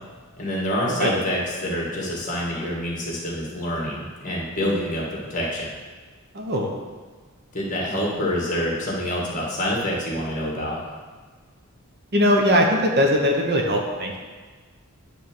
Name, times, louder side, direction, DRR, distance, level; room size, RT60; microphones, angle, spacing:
voice 1, 0.4-5.0 5.3-5.7 7.5-10.8, equal, 35° left, -3 dB, 1.8 m, -26 dB
voice 2, 6.3-6.7 12.1-14.2, equal, 50° right, 1 dB, 0.9 m, -20 dB
9.6 x 3.4 x 6.0 m, 1.4 s
head